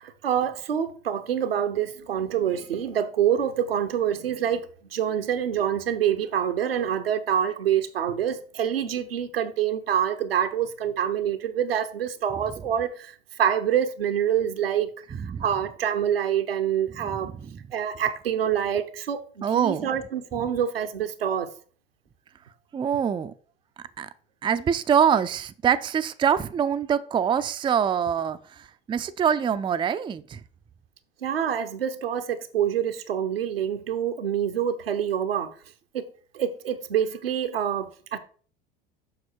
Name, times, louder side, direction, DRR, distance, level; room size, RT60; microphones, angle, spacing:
voice 1, 0.0-4.7 4.9-13.1 13.4-14.9 15.4-17.3 17.7-21.5 31.2-35.5 35.9-36.1 36.3-38.2, right 9 dB, 80° right, 0.9 m, -26 dB
voice 2, 15.1-15.4 17.0-17.6 19.4-19.9 20.3-20.5 22.7-23.3 24.0-24.1 24.4-30.4, right 8 dB, 15° right, 0.5 m, -25 dB
7.1 x 6.1 x 4.5 m
figure-of-eight pair, 70°, 29 cm